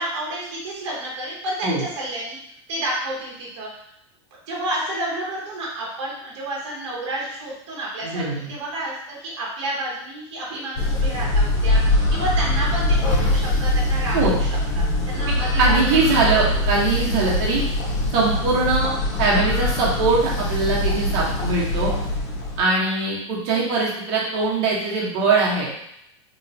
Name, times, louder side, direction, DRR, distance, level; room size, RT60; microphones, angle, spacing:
voice 1, 0.0-2.4 2.7-3.7 4.5-15.9, right 1 dB, 75° right, -4 dB, 1.2 m, -30 dB
voice 2, 8.0-8.5 14.1-14.3 15.3-17.6 18.1-18.9 19.2-21.9 22.6-25.7, right 3 dB, 60° right, -4 dB, 1.4 m, -21 dB
sound 1, 10.7-22.6, left 1 dB, 50° left, 1.5 m, -22 dB
3.2 x 2.8 x 2.9 m, 0.76 s
supercardioid pair, 135°, 15 cm